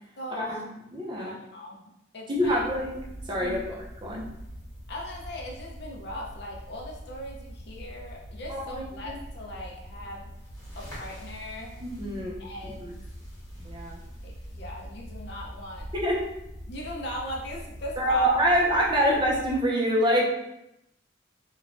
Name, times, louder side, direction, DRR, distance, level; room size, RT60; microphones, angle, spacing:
voice 1, 0.2-0.6 1.1-2.6 3.4-3.6 4.9-10.3 10.8-11.8 12.4-13.0 14.2-15.9 16.6-18.3 18.6-19.1, left 1 dB, 60° left, -1 dB, 0.6 m, -39 dB
voice 2, 0.9-1.4 2.3-2.9 3.3-3.8 4.0-4.2 8.5-9.2 11.8-12.3 12.6-12.9 13.6-14.0 16.0-16.2 18.0-20.3, equal, 25° right, -2 dB, 0.5 m, -25 dB
sound 1, 2.4-19.6, equal, 15° left, 1.1 m, -43 dB
3.1 x 2.2 x 2.5 m, 0.85 s
head